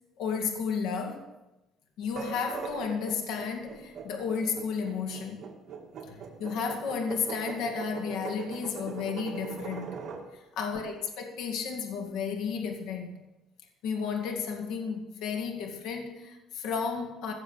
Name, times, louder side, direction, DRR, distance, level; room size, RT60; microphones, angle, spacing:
voice 1, 0.2-1.3 2.0-5.4 6.1-10.0 10.5-13.2 13.8-17.3, left 6 dB, 80° left, 4 dB, 2.1 m, -33 dB
sound 1, 2.0-10.2, right 6 dB, 50° right, 2.8 m, -40 dB
16.5 x 7.4 x 7.1 m, 1.0 s
cardioid pair, 145°, 0 cm